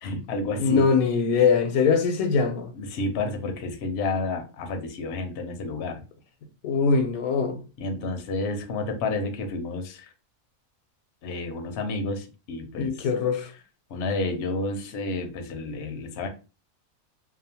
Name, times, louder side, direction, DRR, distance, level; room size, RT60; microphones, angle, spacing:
voice 1, 0.0-0.9 2.8-6.0 7.8-10.1 11.2-13.0 13.9-16.3, left 2 dB, 65° left, 0.7 m, -30 dB
voice 2, 0.6-2.7 6.6-7.6 12.8-13.5, left 5 dB, 80° left, 1.0 m, -22 dB
2.7 x 2.0 x 2.7 m
omnidirectional pair, 1.5 m